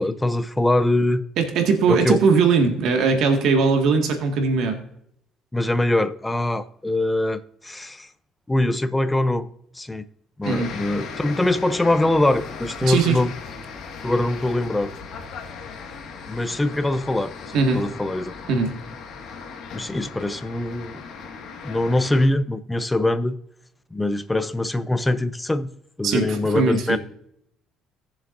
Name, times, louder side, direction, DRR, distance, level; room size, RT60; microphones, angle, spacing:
voice 1, 0.0-1.3 1.9-2.2 5.5-8.1 8.5-9.5 9.7-10.0 10.4-13.3 14.0-14.9 16.3-18.4 19.7-21.0 21.6-23.4 23.9-25.7 26.0-27.0, left 1 dB, 10° left, 0.6 m, -23 dB
voice 2, 1.4-4.8 10.5-10.7 12.8-13.2 17.5-17.8 18.5-18.7 26.0-27.0, right 4 dB, 65° right, 1.8 m, -20 dB
sound 1, 10.4-22.3, left 5 dB, 55° left, 1.8 m, -37 dB
18.0 x 7.3 x 2.6 m
cardioid pair, 125°, 0 cm